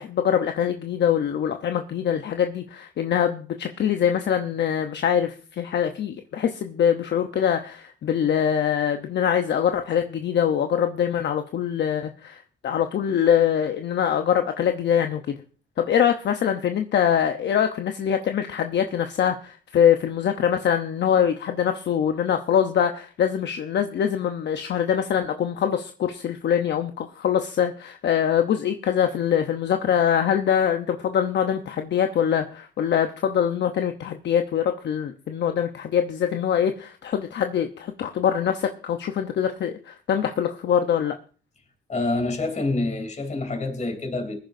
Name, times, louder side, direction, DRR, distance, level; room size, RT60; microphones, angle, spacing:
voice 1, 0.0-15.4 15.8-41.1, left 8 dB, 60° left, 0.9 m, -23 dB
voice 2, 41.9-44.4, left 2 dB, 35° left, 3.4 m, -27 dB
22.0 x 10.5 x 2.7 m
cardioid pair, 90°, 20 cm